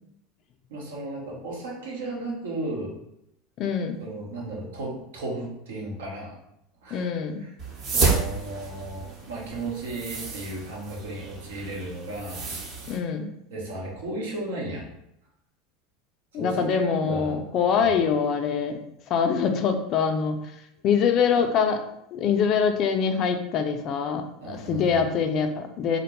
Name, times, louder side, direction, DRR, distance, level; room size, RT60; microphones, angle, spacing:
voice 1, 0.7-3.0 4.0-6.3 6.8-7.0 7.9-12.5 13.5-14.8 16.3-17.4 17.8-17.9 24.4-25.0, right 2 dB, 85° right, -3 dB, 0.9 m, -34 dB
voice 2, 3.6-4.0 6.9-7.4 12.9-13.3 16.3-18.8 19.1-20.4 20.8-21.8 22.1-26.0, left 6 dB, 50° left, 6 dB, 0.3 m, -24 dB
sound 1, 7.6-13.0, right 4 dB, 50° right, 0.9 m, -30 dB
2.5 x 2.1 x 2.9 m, 0.79 s
hypercardioid pair, 100°, 0 cm